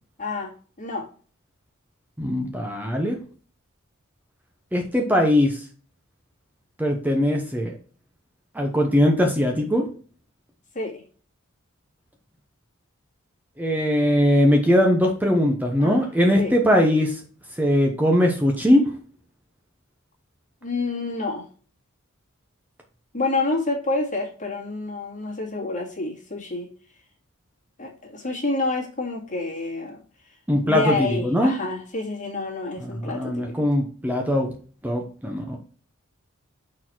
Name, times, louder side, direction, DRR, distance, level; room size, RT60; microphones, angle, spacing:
voice 1, 0.2-1.1 10.7-11.0 15.8-16.1 16.4-16.5 20.6-21.5 23.1-26.7 27.8-30.0 30.6-33.7, left 3 dB, 35° left, -2 dB, 2.2 m, -28 dB
voice 2, 2.2-3.2 4.7-5.6 6.8-7.7 8.5-9.8 13.6-17.2 17.6-18.8 30.5-31.5 32.8-34.5 34.8-35.6, left 1 dB, 10° right, 1 dB, 0.9 m, -20 dB
6.6 x 4.2 x 4.6 m, 0.40 s
head